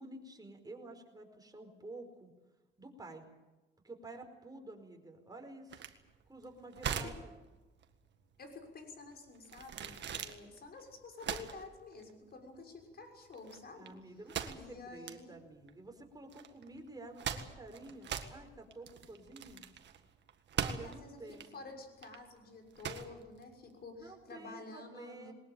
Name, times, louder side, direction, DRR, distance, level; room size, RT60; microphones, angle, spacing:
voice 1, 0.0-2.3 2.8-3.3 3.8-5.9 6.3-7.3 13.7-19.7 20.5-21.5 24.0-25.3, right 2 dB, 20° right, 3 dB, 4.9 m, -50 dB
sound 1, 5.7-24.2, right 8 dB, 65° right, 1.8 m, -42 dB
voice 2, 8.4-13.9 14.5-15.4 20.6-21.2 21.5-25.3, left 3 dB, 50° left, 3 dB, 6.3 m, -50 dB
21.0 x 19.5 x 9.1 m, 1.1 s
cardioid pair, 90°, 20 cm